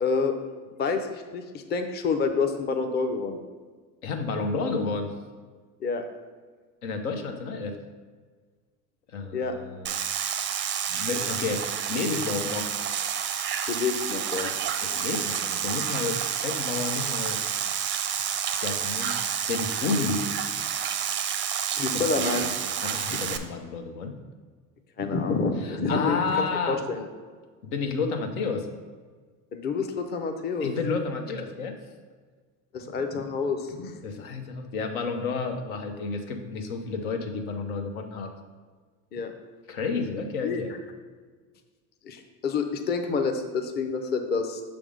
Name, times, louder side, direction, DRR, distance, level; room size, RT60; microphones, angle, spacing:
voice 1, 0.0-0.3 0.8-3.4 5.8-6.0 9.3-9.5 13.7-14.6 21.8-22.4 25.0-27.1 29.5-30.7 32.7-33.9 39.1-39.3 40.4-40.6 42.0-44.6, left 4 dB, 25° left, 5 dB, 0.5 m, -28 dB
voice 2, 4.0-5.1 6.8-7.8 9.1-10.0 10.9-12.7 14.8-17.4 18.6-19.2 19.5-20.2 21.9-24.1 25.6-26.8 27.6-28.7 30.6-31.7 34.0-38.4 39.7-40.7, left 4 dB, 85° left, 5 dB, 0.9 m, -31 dB
sound 1, 9.8-23.4, right 8 dB, 30° right, 0.4 m, -29 dB
5.9 x 3.5 x 4.9 m, 1.5 s
supercardioid pair, 95°, 41 cm